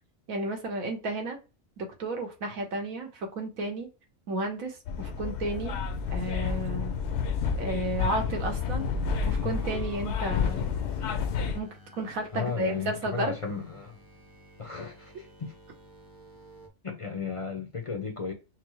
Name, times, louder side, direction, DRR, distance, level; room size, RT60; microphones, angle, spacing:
voice 1, 0.3-1.4 1.8-3.9 4.3-5.8 6.1-6.9 7.6-8.9 9.3-10.7 11.5-11.7 12.0-13.3, right 2 dB, 90° right, 1.5 m, -32 dB
sound 1, 4.9-11.6, left 6 dB, 65° left, 0.8 m, -30 dB
sound 2, 8.0-16.7, left 1 dB, 25° right, 0.6 m, -51 dB
voice 2, 12.3-14.0 14.6-15.5 16.8-18.3, left 5 dB, 45° left, 0.4 m, -34 dB
5.8 x 2.0 x 3.1 m
omnidirectional pair, 1.4 m